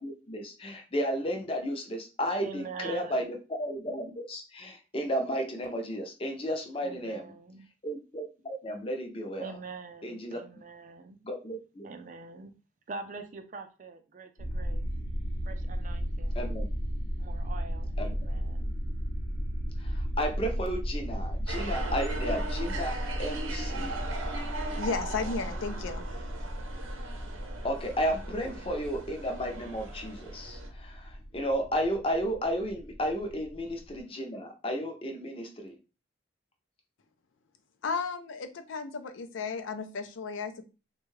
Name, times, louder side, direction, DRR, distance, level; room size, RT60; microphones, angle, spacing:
voice 1, 0.0-7.3 7.8-9.5 10.0-10.4 11.2-11.9 16.4-16.7 18.0-18.2 19.8-24.0 27.6-35.8, equal, 30° left, 0.5 m, -33 dB
voice 2, 2.4-3.2 6.8-7.7 9.4-11.2 11.8-12.5 12.9-14.8 15.5-16.4 17.2-18.7, right 4 dB, 40° right, 0.4 m, -44 dB
sound 1, 14.4-34.0, equal, 60° left, 0.8 m, -35 dB
sound 2, 21.5-30.7, right 3 dB, 90° right, 0.7 m, -40 dB
voice 3, 24.8-26.0 37.8-40.6, left 4 dB, 80° left, 0.5 m, -34 dB
3.5 x 2.3 x 3.1 m
head